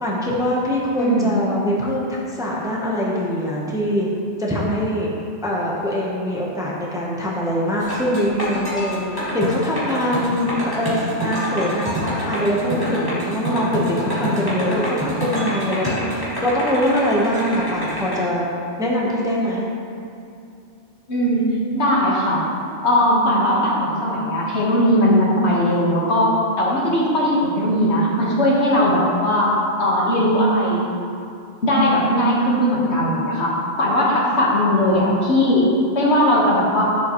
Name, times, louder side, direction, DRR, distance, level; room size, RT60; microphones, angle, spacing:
voice 1, 0.0-4.1 4.4-5.1 5.4-10.5 10.8-18.4 18.8-19.7, equal, 5° right, -4 dB, 0.9 m, -23 dB
voice 2, 1.0-1.4 21.1-21.4 21.7-22.4 22.8-29.5 29.8-30.8 31.6-33.5 33.8-36.8, equal, 70° left, -4 dB, 1.7 m, -18 dB
sound 1, 7.8-18.2, equal, 20° left, 2.1 m, -27 dB
10.0 x 7.3 x 3.1 m, 2.6 s
omnidirectional pair, 1.2 m